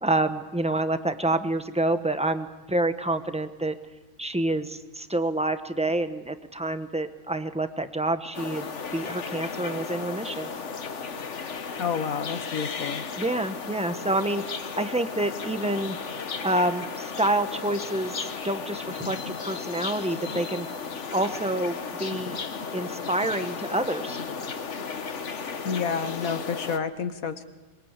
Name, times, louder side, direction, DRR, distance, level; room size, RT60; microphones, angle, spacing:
voice 1, 0.0-3.8 4.2-8.7 8.9-10.5 13.2-16.0 16.4-20.7 21.1-22.4 22.7-24.2, right 1 dB, 5° right, 9 dB, 0.9 m, -28 dB
sound 1, 8.3-26.8, left 5 dB, 55° left, 1.5 m, -35 dB
voice 2, 11.8-13.0 25.6-27.4, left 6 dB, 70° left, 10 dB, 1.5 m, -29 dB
26.0 x 22.5 x 8.2 m, 1.2 s
omnidirectional pair, 1.5 m